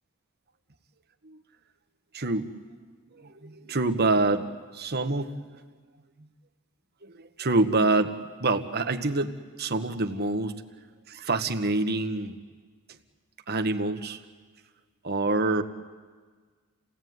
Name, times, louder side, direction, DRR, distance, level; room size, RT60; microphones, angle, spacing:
voice 1, 2.1-2.5 3.1-4.5 4.7-5.4 7.0-8.1 8.4-9.3 9.6-10.5 11.1-12.4 13.5-14.2 15.0-15.6, right 2 dB, 50° right, 7 dB, 1.4 m, -26 dB
29.0 x 17.5 x 9.4 m, 1.5 s
head